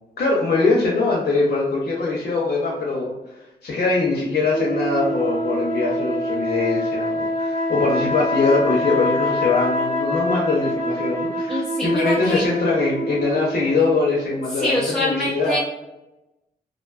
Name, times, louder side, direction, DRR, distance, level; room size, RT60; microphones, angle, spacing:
voice 1, 0.2-3.1 3.6-15.6, left 3 dB, 75° left, -4 dB, 0.6 m, -22 dB
sound 1, 4.5-14.2, equal, 55° right, 0.9 m, -25 dB
voice 2, 11.5-12.4 14.6-15.6, left 1 dB, ahead, -6 dB, 0.5 m, -24 dB
2.5 x 2.2 x 2.3 m, 0.94 s
wide cardioid pair, 150°, 17 cm